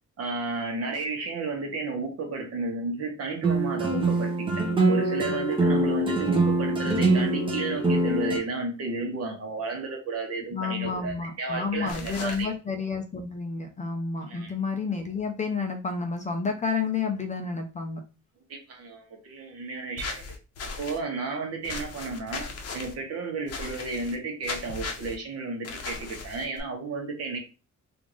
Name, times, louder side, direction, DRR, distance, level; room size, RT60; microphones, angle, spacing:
voice 1, 0.2-12.5 14.3-14.5 18.5-20.2 20.8-27.4, right 3 dB, 55° right, 2 dB, 1.1 m, -33 dB
sound 1, 3.4-8.4, right 2 dB, 15° right, 0.6 m, -24 dB
voice 2, 10.5-18.0, left 4 dB, 25° left, 5 dB, 0.4 m, -30 dB
sound 2, 11.9-12.4 20.0-21.0 21.6-22.9 23.5-24.2 24.4-25.2 25.6-26.6, left 4 dB, 55° left, 0.7 m, -37 dB
3.5 x 2.5 x 3.0 m, 0.33 s
cardioid pair, 155°, 30 cm